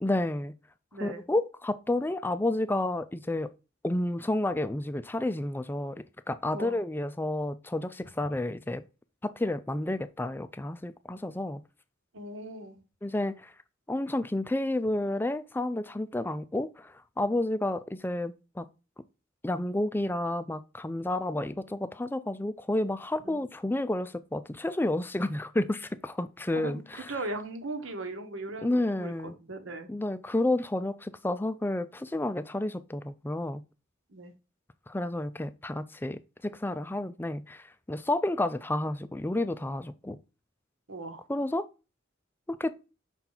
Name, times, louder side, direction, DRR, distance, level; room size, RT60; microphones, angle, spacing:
voice 1, 0.0-0.5 1.0-3.5 3.8-8.8 9.2-11.6 13.0-13.5 13.9-18.7 19.4-27.1 28.6-29.4 29.9-33.6 34.9-40.2 41.3-41.7 42.5-42.8, left 1 dB, 10° left, 0.4 m, -30 dB
voice 2, 0.9-1.2 6.5-6.8 12.1-12.8 23.2-23.4 26.5-29.9 34.1-34.3 40.9-41.3, right 2 dB, 80° right, 1.3 m, -38 dB
5.7 x 4.4 x 3.9 m
head